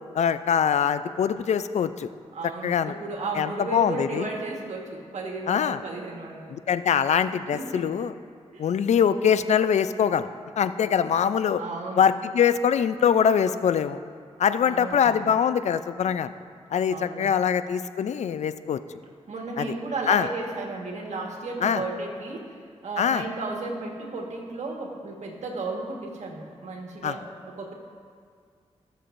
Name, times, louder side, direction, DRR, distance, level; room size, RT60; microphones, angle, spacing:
voice 1, 0.1-2.1 2.6-2.9 3.4-4.2 5.5-5.8 6.7-8.1 8.6-10.3 10.6-11.6 12.0-14.0 14.4-16.3 16.7-18.8 19.6-19.7 20.1-20.3 21.6-21.8 23.0-23.2 27.0-27.1, left 8 dB, 70° left, 12 dB, 0.4 m, -23 dB
voice 2, 2.3-6.6 7.5-7.9 8.5-8.7 11.6-12.1 14.6-15.3 16.9-17.3 19.3-27.7, right 3 dB, 75° right, 0 dB, 1.5 m, -34 dB
17.5 x 6.9 x 2.6 m, 2.1 s
cardioid pair, 65°, 12 cm